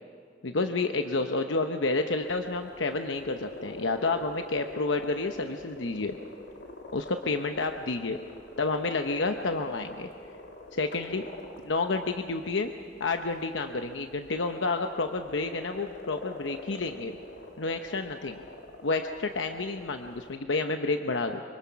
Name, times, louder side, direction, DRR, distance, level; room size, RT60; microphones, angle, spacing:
voice 1, 0.4-6.1 6.9-8.2 8.6-10.1 10.7-11.3 11.6-12.7 13.0-17.2 17.6-18.4 18.8-21.4, left 3 dB, 85° left, 6 dB, 0.9 m, -30 dB
sound 1, 2.2-20.4, left 2 dB, 70° left, 2.1 m, -46 dB
25.0 x 24.0 x 5.8 m, 2.4 s
head